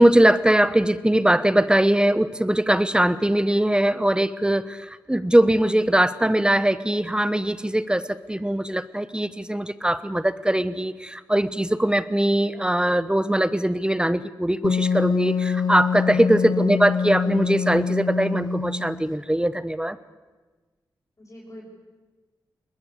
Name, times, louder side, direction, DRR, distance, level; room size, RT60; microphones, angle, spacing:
voice 1, 0.0-20.0, right 1 dB, 10° right, 15 dB, 1.1 m, -21 dB
Wind instrument woodwind instrument, 14.6-19.1, left 6 dB, 55° left, 1.0 m, -25 dB
voice 2, 16.5-17.0 21.2-21.6, equal, 35° left, -7 dB, 7.7 m, -44 dB
21.5 x 20.5 x 8.4 m, 1.3 s
cardioid pair, 60°, 9 cm